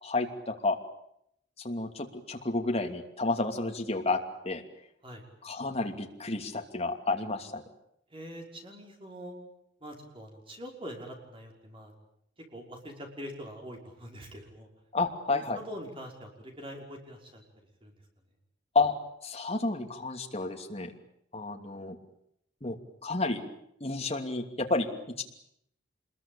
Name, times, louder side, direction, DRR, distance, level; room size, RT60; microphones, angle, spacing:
voice 1, 0.0-0.8 1.6-4.6 5.4-7.6 14.9-15.6 18.7-18.9 19.2-20.9 21.3-22.0 22.6-23.4 23.8-25.2, left 3 dB, 35° left, 3 dB, 2.8 m, -31 dB
voice 2, 8.1-9.4 9.8-11.9 12.4-14.7 15.3-17.4 17.8-17.9, equal, 30° right, 2 dB, 5.5 m, -44 dB
26.5 x 22.0 x 8.8 m, 0.74 s
head